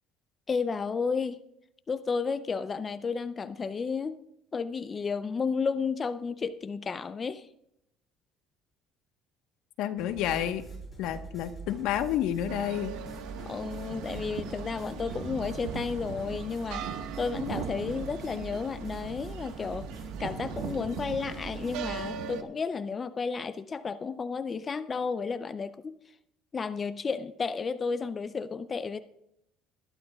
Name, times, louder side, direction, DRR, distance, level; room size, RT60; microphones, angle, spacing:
voice 1, 0.5-1.4 1.9-4.2 4.5-7.5 13.4-16.9 17.2-19.9 20.2-26.0 26.5-29.0, left 5 dB, 30° left, 11 dB, 0.5 m, -32 dB
voice 2, 9.8-10.6 11.0-12.9, left 11 dB, 75° left, 8 dB, 1.2 m, -30 dB
sound 1, 10.0-22.1, right 3 dB, 10° left, 5.4 m, -44 dB
sound 2, 12.5-22.4, right 7 dB, 85° right, 1.4 m, -39 dB
22.0 x 11.5 x 2.4 m, 0.79 s
cardioid pair, 125°, 0 cm